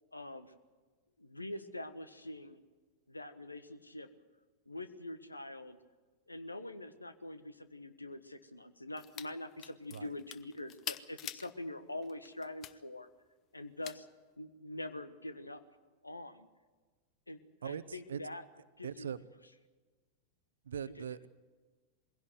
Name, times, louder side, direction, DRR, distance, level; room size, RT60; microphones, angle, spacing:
voice 1, 0.1-0.5 1.2-2.6 3.1-4.1 4.7-5.8 6.3-13.1 13.5-14.1 14.4-15.6 16.0-16.5 17.3-18.4 18.8-19.1 20.9-21.1, left 1 dB, 85° left, 11 dB, 1.3 m, -44 dB
sound 1, 9.0-9.3 9.6-11.5 12.0-12.7 13.8-14.0, left 10 dB, 30° left, 0.8 m, -44 dB
voice 2, 17.6-18.2 18.8-19.2 20.7-21.3, right 8 dB, 65° right, 17 dB, 0.8 m, -40 dB
22.0 x 16.5 x 8.0 m, 1.4 s
figure-of-eight pair, 90°, 0 cm